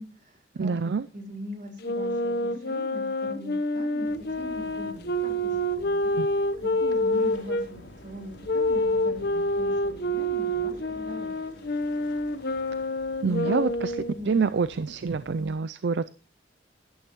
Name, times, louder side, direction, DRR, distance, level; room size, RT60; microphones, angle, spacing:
voice 1, 0.0-0.7 1.1-6.0 6.6-11.6 12.2-12.9 13.2-13.5 14.1-14.5, equal, 45° right, 3.8 m, -41 dB
voice 2, 0.5-1.1 6.2-6.3 13.2-16.1, right 5 dB, 65° right, 0.4 m, -27 dB
Wind instrument woodwind instrument, 1.8-7.7 8.5-14.2, left 1 dB, 60° left, 1.0 m, -27 dB
sound 1, 4.0-15.6, left 1 dB, 90° left, 4.2 m, -49 dB
14.0 x 12.0 x 3.0 m
head